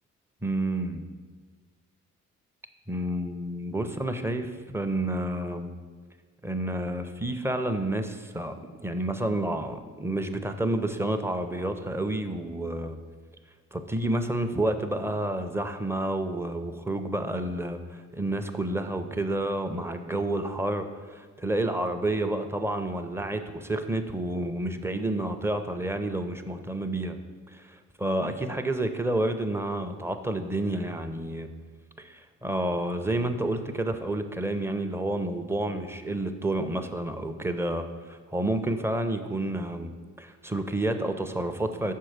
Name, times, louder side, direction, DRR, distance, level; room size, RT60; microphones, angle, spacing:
voice 1, 0.4-1.0 2.9-4.5 4.7-5.7 6.4-13.0 13.7-27.2 27.5-31.5 32.0-39.9 40.2-41.9, right 1 dB, 10° right, 7 dB, 0.5 m, -29 dB
5.9 x 4.5 x 6.5 m, 1.5 s
cardioid pair, 90°, 30 cm